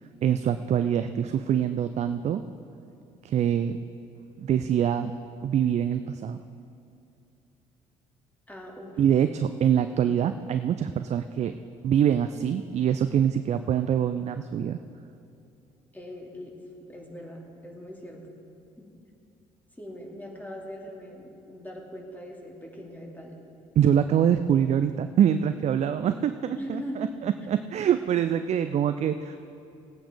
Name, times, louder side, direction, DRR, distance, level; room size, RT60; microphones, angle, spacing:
voice 1, 0.2-2.4 3.2-3.8 4.4-5.1 5.4-6.4 9.0-11.6 11.8-14.8 23.8-29.4, right 9 dB, 40° right, 10 dB, 0.5 m, -24 dB
voice 2, 8.5-9.0 15.9-16.5 16.9-18.2 18.8-18.9 19.8-23.4 26.6-27.0, equal, 10° left, -2 dB, 2.7 m, -40 dB
17.0 x 8.6 x 5.1 m, 2.6 s
figure-of-eight pair, 45°, 17 cm